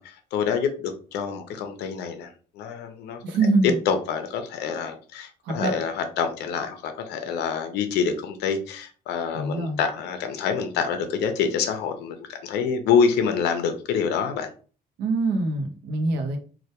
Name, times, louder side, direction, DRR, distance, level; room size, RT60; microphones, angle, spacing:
voice 1, 0.0-2.3 2.6-3.2 3.9-14.5, left 6 dB, 75° left, 7 dB, 0.4 m, -26 dB
voice 2, 3.2-3.8 5.4-5.7 9.3-9.8 15.0-16.4, right 2 dB, 90° right, 5 dB, 0.6 m, -24 dB
2.1 x 2.1 x 2.8 m, 0.39 s
cardioid pair, 110°, 17 cm